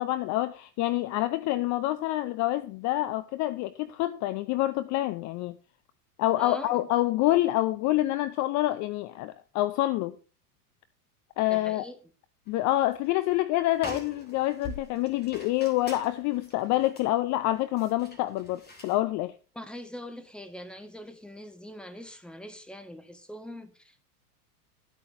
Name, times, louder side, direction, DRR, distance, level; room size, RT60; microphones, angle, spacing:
voice 1, 0.0-5.6 6.2-10.2 11.4-11.9 12.5-19.3, left 16 dB, 40° left, 0.6 m, -27 dB
voice 2, 6.4-6.8 11.5-12.0 19.5-24.0, equal, ahead, 1.5 m, -42 dB
sound 1, 12.5-13.0 13.3-13.4 13.7-19.0, left 1 dB, 20° left, 3.3 m, -44 dB
12.5 x 8.6 x 2.7 m
hypercardioid pair, 90°, 46 cm